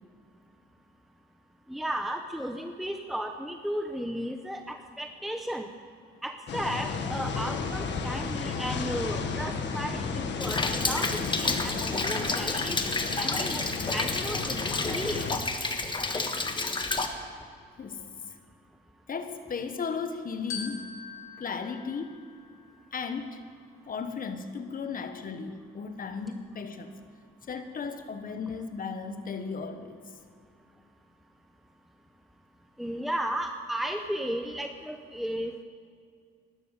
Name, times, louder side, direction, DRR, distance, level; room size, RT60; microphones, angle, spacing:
voice 1, 1.7-5.7 6.2-15.3 32.8-35.6, equal, ahead, 6 dB, 0.8 m, -34 dB
sound 1, 6.5-15.4, left 5 dB, 65° left, 1.5 m, -33 dB
Rain, 10.4-17.1, left 3 dB, 25° left, 1.4 m, -30 dB
voice 2, 17.8-18.1 19.1-20.9 21.4-22.2 22.9-23.4 23.8-27.0 27.5-30.0, left 5 dB, 45° left, 8 dB, 1.4 m, -35 dB
Glockenspiel, 20.5-23.0, left 6 dB, 85° left, 2.5 m, -42 dB
12.5 x 12.0 x 8.1 m, 2.2 s
cardioid pair, 90°, 20 cm